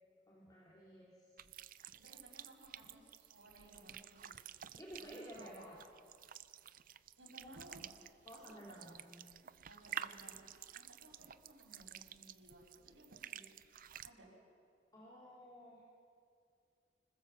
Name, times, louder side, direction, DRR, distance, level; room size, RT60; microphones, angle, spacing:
voice 1, 0.3-1.3 4.7-5.8 8.2-9.3 14.9-15.8, equal, 20° left, -5 dB, 3.0 m, -53 dB
sound 1, 1.4-14.1, right 9 dB, 50° right, 0.6 m, -51 dB
voice 2, 1.9-4.3 4.6-5.7 7.2-8.0 8.4-8.6 9.6-10.3 10.7-13.4 14.0-14.3, right 1 dB, 85° right, 0 dB, 6.6 m, -60 dB
26.0 x 20.5 x 7.1 m, 2.4 s
head